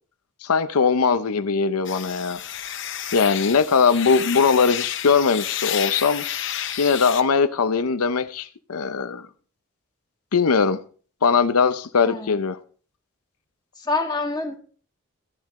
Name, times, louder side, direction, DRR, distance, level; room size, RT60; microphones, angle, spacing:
voice 1, 0.4-2.4 3.1-6.2 6.8-9.2 10.3-10.8 11.2-12.6, left 5 dB, 90° left, 0.7 m, -20 dB
sound 1, 1.8-7.2, left 11 dB, 55° left, 0.8 m, -31 dB
voice 2, 12.0-12.4 13.8-14.6, left 3 dB, 20° left, 1.6 m, -26 dB
14.0 x 10.5 x 3.7 m
head